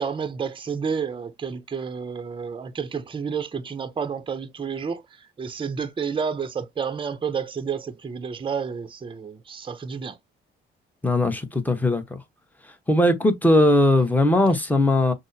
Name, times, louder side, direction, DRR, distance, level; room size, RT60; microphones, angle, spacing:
voice 1, 0.0-10.2, right 6 dB, 25° right, 0.7 m, -30 dB
voice 2, 11.0-12.2 12.9-15.1, left 1 dB, 10° left, 1.0 m, -19 dB
6.1 x 2.1 x 2.7 m
cardioid pair, 90°, 20 cm